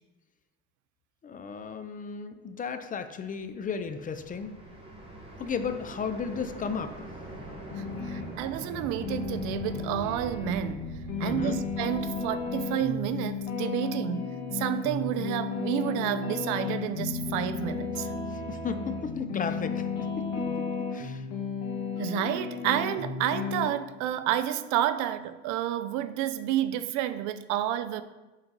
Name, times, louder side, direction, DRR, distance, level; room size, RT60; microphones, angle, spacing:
voice 1, 1.2-4.6 5.4-6.9 11.2-11.6 18.3-21.2, left 6 dB, 25° left, 0.5 m, -34 dB
sound 1, 3.4-13.4, right 1 dB, 15° right, 1.6 m, -43 dB
sound 2, 7.7-8.2 8.7-23.7, left 5 dB, 70° left, 1.9 m, -34 dB
voice 2, 7.8-10.9 11.2-18.1 22.0-28.0, right 12 dB, 65° right, 0.5 m, -30 dB
8.8 x 4.0 x 4.0 m
supercardioid pair, 110°, 32 cm